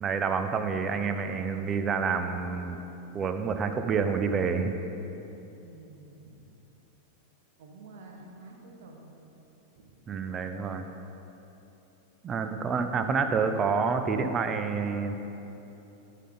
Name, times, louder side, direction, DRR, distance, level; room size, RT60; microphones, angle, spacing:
voice 1, 0.0-2.8 3.1-4.7 10.1-10.9 12.2-15.2, right 5 dB, 25° right, 7 dB, 0.5 m, -28 dB
voice 2, 5.6-6.4 7.6-9.2 9.7-10.0, right 3 dB, 55° right, 1 dB, 1.3 m, -50 dB
12.0 x 5.5 x 3.9 m, 3.0 s
figure-of-eight pair, 90°, 0 cm